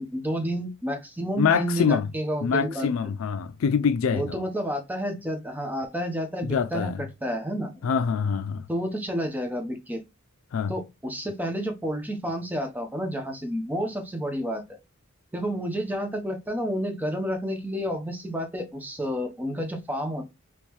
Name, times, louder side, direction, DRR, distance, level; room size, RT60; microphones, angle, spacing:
voice 1, 0.0-3.1 4.1-6.9 7.2-7.7 8.7-10.0 10.7-14.6 15.3-20.3, equal, 10° right, 0.7 m, -30 dB
voice 2, 1.4-2.1 2.4-4.4 6.4-7.0 7.8-8.6 10.5-10.7, left 6 dB, 80° left, 0.4 m, -25 dB
3.7 x 3.0 x 3.0 m
head